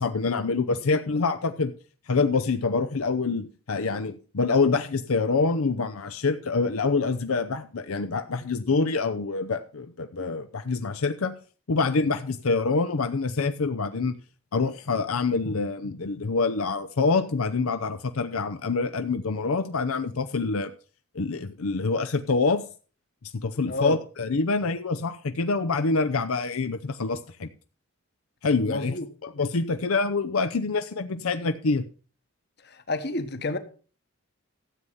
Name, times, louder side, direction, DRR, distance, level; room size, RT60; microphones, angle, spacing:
voice 1, 0.0-1.7 2.1-11.4 11.7-14.1 14.5-20.7 21.1-22.6 23.3-27.5 28.4-28.9 29.2-31.8, left 4 dB, 85° left, 0.7 m, -26 dB
voice 2, 23.7-24.0 28.7-29.1 32.6-33.6, left 2 dB, 50° left, 1.3 m, -29 dB
13.0 x 7.8 x 5.6 m
head